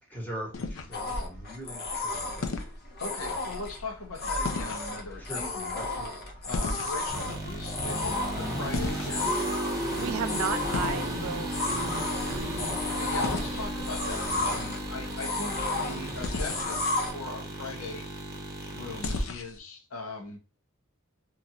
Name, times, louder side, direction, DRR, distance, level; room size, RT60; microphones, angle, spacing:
voice 1, 0.0-2.7 5.2-5.5 5.7-6.1 6.5-6.8, equal, 10° left, 1.1 m, -42 dB
sound 1, 0.5-1.2 2.4-2.8 4.4-4.9 6.5-7.2 8.7-9.4 10.7-11.1 13.2-13.5 16.2-16.7 19.0-19.6, left 3 dB, 65° left, 0.5 m, -33 dB
sound 2, 0.9-17.1, left 2 dB, 50° left, 0.9 m, -33 dB
voice 2, 3.0-5.9 6.5-9.2 12.9-18.1 18.7-20.4, left 3 dB, 85° left, 0.9 m, -39 dB
sound 3, 7.1-19.3, right 1 dB, 15° right, 1.0 m, -34 dB
voice 3, 9.7-12.8, right 8 dB, 85° right, 0.3 m, -36 dB
3.1 x 2.4 x 2.6 m
head